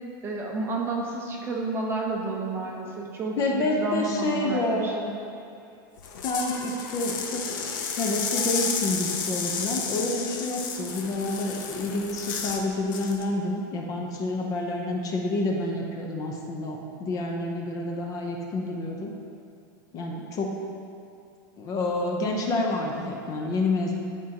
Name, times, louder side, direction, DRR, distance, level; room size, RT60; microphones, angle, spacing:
voice 1, 0.2-4.9, right 3 dB, 20° right, -1 dB, 0.9 m, -30 dB
voice 2, 3.4-5.2 6.2-19.1 19.9-20.6 21.6-23.9, left 2 dB, 30° left, 1 dB, 0.7 m, -28 dB
sound 1, 6.0-12.6 12.9-13.2, left 6 dB, 70° left, 0.8 m, -32 dB
11.0 x 4.5 x 2.9 m, 2.5 s
supercardioid pair, 150°, 11 cm